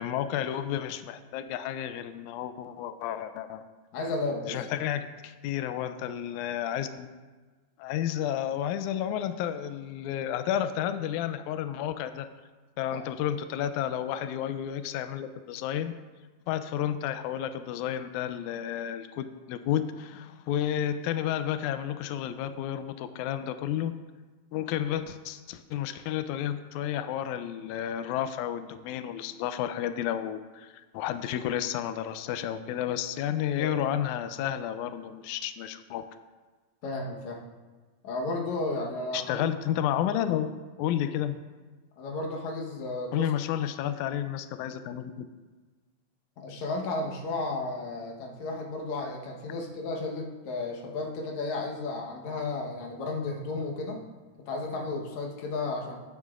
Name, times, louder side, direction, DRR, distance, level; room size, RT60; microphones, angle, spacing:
voice 1, 0.0-3.6 4.5-7.1 7.8-12.3 12.8-15.9 16.5-23.9 24.5-36.0 39.1-40.5 40.8-41.4 43.1-45.3 50.0-50.1, left 10 dB, 90° left, 10 dB, 1.7 m, -31 dB
voice 2, 3.9-4.6 33.5-33.7 36.8-37.4 38.0-39.5 42.0-43.3 46.4-54.0 54.5-56.0, left 2 dB, 65° left, 0 dB, 2.3 m, -33 dB
16.0 x 9.3 x 2.5 m, 1.3 s
omnidirectional pair, 3.9 m